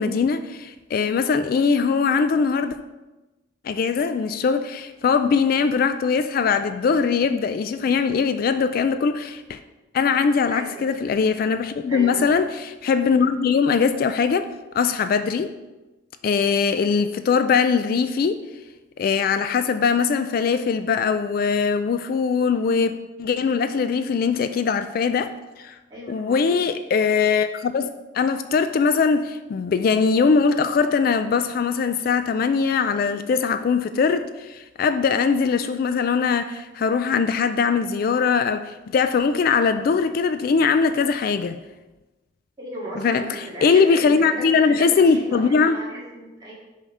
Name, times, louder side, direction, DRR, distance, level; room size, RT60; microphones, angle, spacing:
voice 1, 0.0-2.8 3.6-9.6 9.9-15.5 16.2-18.4 19.0-22.9 23.2-25.8 26.1-41.6 43.0-45.8, left 5 dB, 50° left, 10 dB, 0.3 m, -21 dB
voice 2, 10.5-10.9 11.9-12.4 25.9-26.6 42.6-46.5, right 1 dB, 20° right, -5 dB, 2.1 m, -36 dB
5.6 x 5.5 x 4.8 m, 1.1 s
head